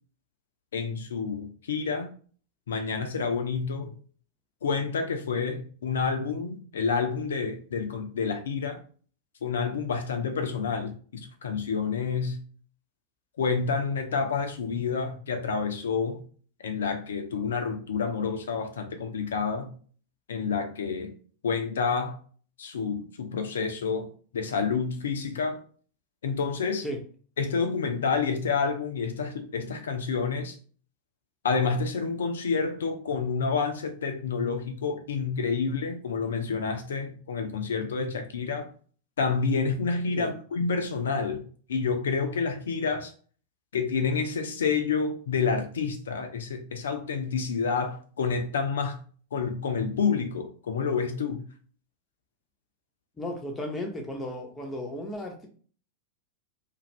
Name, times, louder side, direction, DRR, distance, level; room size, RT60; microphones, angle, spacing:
voice 1, 0.7-2.1 2.7-3.9 4.6-8.8 9.4-12.4 13.4-16.2 16.6-19.7 20.3-21.1 21.4-22.2 22.6-25.6 26.2-26.8 27.4-30.5 31.4-38.7 39.2-41.4 41.7-43.1 43.7-49.0 49.3-51.4, left 5 dB, 65° left, 0.5 m, -29 dB
voice 2, 53.2-55.5, left 1 dB, 10° left, 0.8 m, -35 dB
2.5 x 2.4 x 3.1 m
figure-of-eight pair, 90°, 0 cm